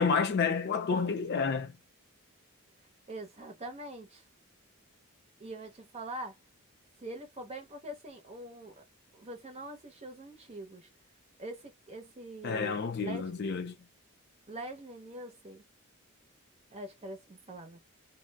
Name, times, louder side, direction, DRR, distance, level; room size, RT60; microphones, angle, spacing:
voice 1, 0.0-1.7 12.4-13.8, left 5 dB, 45° left, 0.4 m, -29 dB
voice 2, 3.1-4.2 5.4-6.4 7.0-8.8 9.1-10.9 11.4-13.3 14.5-15.6 16.7-17.8, right 1 dB, 30° right, 0.7 m, -43 dB
2.2 x 2.1 x 3.3 m
head